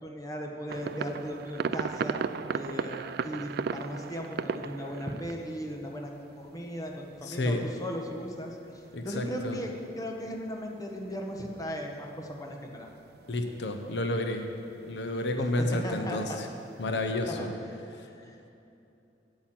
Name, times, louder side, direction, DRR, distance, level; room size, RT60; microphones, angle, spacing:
voice 1, 0.0-2.3 2.5-6.1 6.4-8.6 9.0-12.9 15.8-16.4 17.3-17.8 18.1-18.5, equal, 20° left, 1 dB, 1.1 m, -37 dB
sound 1, 0.7-17.2, right 6 dB, 60° right, 0.3 m, -39 dB
voice 2, 7.2-7.6 8.9-9.6 13.3-14.5 14.8-16.5 16.8-17.5 17.9-18.1, left 1 dB, 70° left, 5 dB, 0.8 m, -30 dB
9.4 x 8.6 x 7.6 m, 2.8 s
head